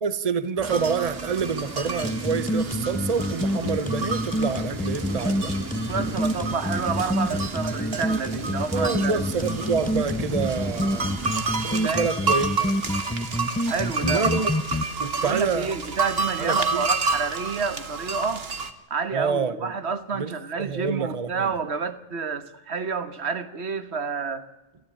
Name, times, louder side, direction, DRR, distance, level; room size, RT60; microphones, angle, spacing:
voice 1, 0.0-5.5 8.7-11.1 11.6-12.9 14.0-14.5 15.0-15.7 16.4-16.9 19.1-19.7 20.1-20.3 20.6-21.5, right 5 dB, 35° right, 1.0 m, -27 dB
sound 1, 0.6-11.3, right 2 dB, 15° right, 1.6 m, -36 dB
sound 2, 0.6-18.7, right 4 dB, 65° right, 1.7 m, -31 dB
sound 3, 2.0-14.8, equal, 10° left, 0.8 m, -27 dB
voice 2, 5.9-9.2 11.8-12.1 13.7-14.3 15.0-18.5 18.9-24.5, right 5 dB, 85° right, 1.6 m, -29 dB
29.5 x 13.5 x 8.6 m
omnidirectional pair, 1.1 m